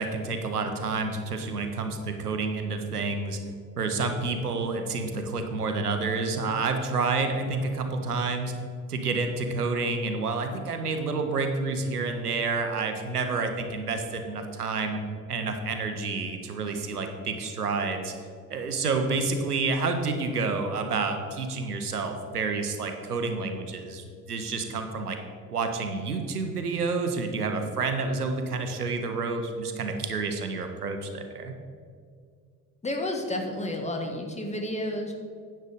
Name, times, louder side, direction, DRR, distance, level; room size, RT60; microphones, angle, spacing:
voice 1, 0.0-3.4 3.8-8.5 8.9-15.0 15.3-18.1 18.5-25.2 25.5-31.5, right 4 dB, 85° right, 6 dB, 0.8 m, -29 dB
voice 2, 32.8-35.1, left 1 dB, 15° left, 3 dB, 1.5 m, -31 dB
9.8 x 6.7 x 5.0 m, 2.2 s
figure-of-eight pair, 55°, 44 cm